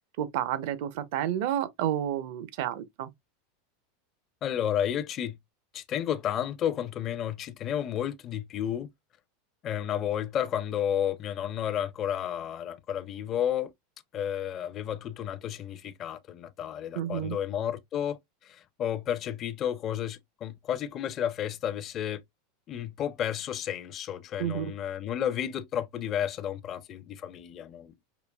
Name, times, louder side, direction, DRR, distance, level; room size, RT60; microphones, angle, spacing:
voice 1, 0.2-3.1 16.9-17.4 24.4-24.7, right 11 dB, 65° right, 0.6 m, -30 dB
voice 2, 4.4-5.4 5.7-8.9 9.6-13.7 14.1-22.2 22.7-27.9, left 10 dB, 35° left, 0.4 m, -32 dB
5.0 x 2.3 x 2.3 m
supercardioid pair, 120°, 0 cm